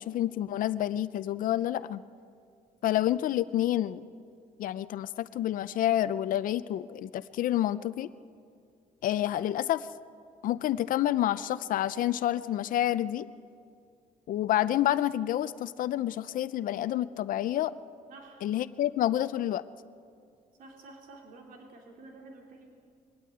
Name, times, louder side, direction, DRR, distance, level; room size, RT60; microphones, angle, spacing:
voice 1, 0.0-2.0 2.8-4.0 4.6-8.1 9.0-9.9 10.4-13.3 14.3-17.7 18.4-19.6, left 12 dB, 70° left, 15 dB, 0.5 m, -28 dB
voice 2, 18.1-18.5 20.6-22.7, right 2 dB, 75° right, 1 dB, 3.1 m, -50 dB
22.0 x 17.5 x 8.6 m, 2.3 s
cardioid pair, 130°, 15 cm